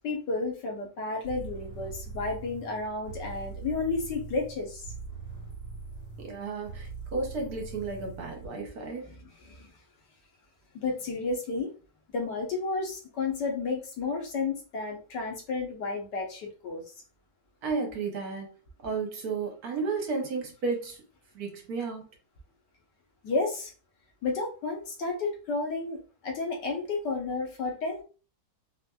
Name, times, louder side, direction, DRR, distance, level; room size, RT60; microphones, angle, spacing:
voice 1, 0.0-4.8 9.0-9.7 10.7-11.7 12.1-16.8 23.2-23.7 24.2-26.0 26.2-28.0, left 3 dB, 80° left, 1.6 m, -32 dB
sound 1, 1.2-8.5, right 4 dB, 60° left, 2.3 m, -42 dB
voice 2, 6.2-9.1 17.6-18.5 18.8-21.0 21.3-22.0, right 4 dB, 65° right, 1.3 m, -33 dB
4.2 x 2.4 x 2.3 m
omnidirectional pair, 1.8 m